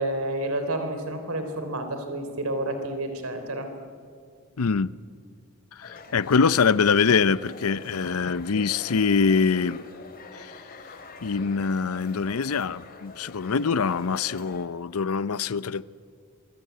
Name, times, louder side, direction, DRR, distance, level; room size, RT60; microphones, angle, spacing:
voice 1, 0.0-3.7, right 1 dB, 85° right, 3.5 m, -30 dB
voice 2, 4.6-4.9 5.8-9.8 10.3-10.5 11.2-15.8, left 5 dB, 90° left, 0.6 m, -24 dB
sound 1, 5.8-14.7, left 3 dB, 45° left, 2.8 m, -44 dB
27.0 x 22.5 x 9.4 m
head